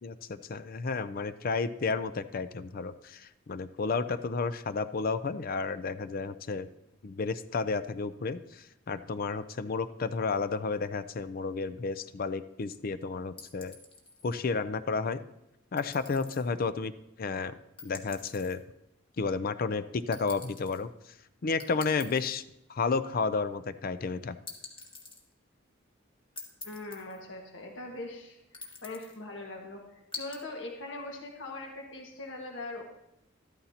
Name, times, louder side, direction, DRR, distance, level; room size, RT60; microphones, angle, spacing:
voice 1, 0.0-6.7 7.0-8.4 8.9-13.8 14.2-15.2 15.7-16.9 17.2-18.6 19.2-20.9 21.4-22.4 22.7-24.4, left 4 dB, 50° left, 13 dB, 0.4 m, -32 dB
sound 1, 13.4-14.3 15.8-16.4 17.8-18.6 20.1-20.8 21.6-22.3 24.5-25.2 26.4-27.2 28.5-29.2 30.1-30.4, left 4 dB, 30° left, 1.7 m, -45 dB
voice 2, 26.6-32.8, left 2 dB, 70° left, 1 dB, 1.7 m, -41 dB
13.0 x 13.0 x 2.9 m, 0.87 s
head